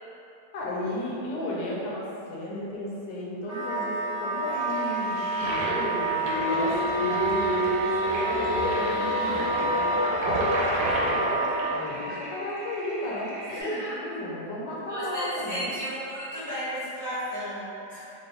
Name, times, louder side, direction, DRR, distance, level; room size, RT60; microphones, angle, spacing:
voice 1, 0.5-15.8, left 1 dB, 85° left, -5 dB, 1.4 m, -34 dB
Wind instrument woodwind instrument, 3.4-11.8, right 2 dB, 50° left, 0.4 m, -29 dB
Toilet flush, 4.5-13.6, right 1 dB, 65° right, 1.1 m, -33 dB
Singing, 6.2-11.3, left 1 dB, 50° right, 0.6 m, -30 dB
voice 2, 13.5-14.0 14.9-18.0, equal, 30° right, -14 dB, 1.1 m, -33 dB
3.7 x 2.2 x 3.3 m, 2.8 s
omnidirectional pair, 1.9 m